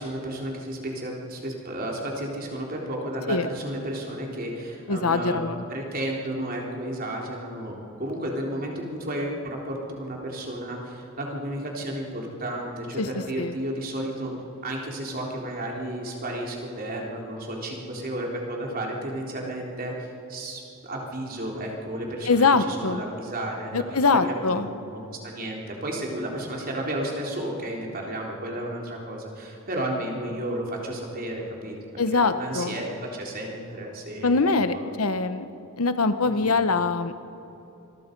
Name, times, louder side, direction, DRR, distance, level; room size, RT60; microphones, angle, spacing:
voice 1, 0.0-5.4 5.7-14.3 14.6-23.8 24.1-34.8 36.2-36.5, right 1 dB, 45° right, -1 dB, 3.8 m, -33 dB
voice 2, 4.9-5.6 13.0-13.1 13.4-13.5 22.3-23.0 23.7-24.7 32.0-32.8 34.2-35.5 35.8-37.2, left 4 dB, 85° left, 11 dB, 1.0 m, -23 dB
26.0 x 22.0 x 5.4 m, 3.0 s
head